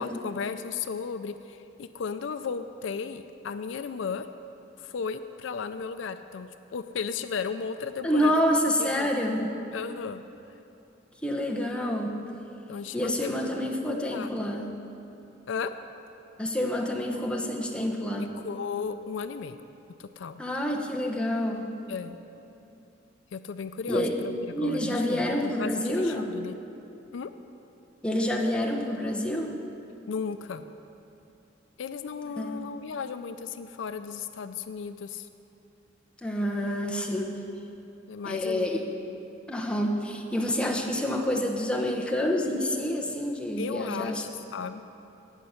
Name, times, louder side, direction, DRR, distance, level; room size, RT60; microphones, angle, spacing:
voice 1, 0.0-4.3 4.8-8.3 8.8-9.1 9.7-10.2 12.7-14.3 15.5-15.7 18.2-19.6 20.0-20.4 21.9-22.2 23.3-24.3 24.6-26.6 27.1-27.3 30.1-30.6 31.8-35.3 38.1-38.8 43.6-44.8, left 5 dB, 70° left, 10 dB, 0.4 m, -35 dB
voice 2, 8.0-9.6 11.2-12.2 12.9-14.7 16.4-18.3 20.4-21.7 23.9-24.1 24.5-26.3 28.0-29.5 32.4-32.6 36.2-37.3 38.2-38.8 39.5-44.2, equal, 5° left, -1 dB, 1.0 m, -28 dB
17.5 x 6.4 x 5.7 m, 2.8 s
head